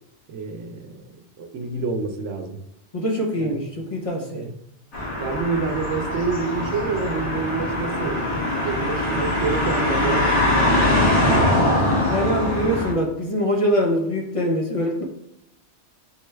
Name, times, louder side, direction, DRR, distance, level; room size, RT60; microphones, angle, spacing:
voice 1, 0.3-1.1 1.4-2.6 3.4-3.5 4.3-4.5 5.2-8.2 8.6-10.4 10.7-11.7 12.4-12.6, right 4 dB, 90° right, 4 dB, 0.9 m, -28 dB
voice 2, 2.9-4.5 12.1-15.0, equal, 40° left, 0 dB, 0.6 m, -23 dB
sound 1, 4.9-12.9, left 1 dB, 80° left, 1.5 m, -22 dB
6.5 x 2.2 x 3.1 m, 0.80 s
omnidirectional pair, 1.2 m